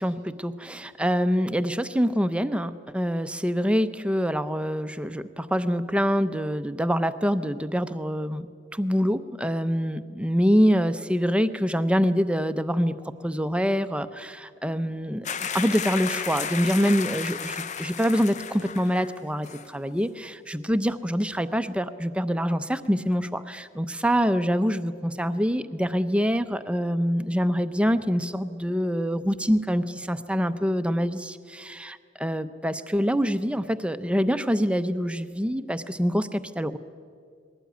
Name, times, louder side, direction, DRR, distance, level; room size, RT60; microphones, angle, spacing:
voice 1, 0.0-13.0 13.2-36.8, equal, 5° right, 10 dB, 0.7 m, -25 dB
sound 1, 15.2-19.2 19.4-19.7, left 7 dB, 40° left, 0.7 m, -33 dB
21.0 x 17.5 x 9.3 m, 2.1 s
head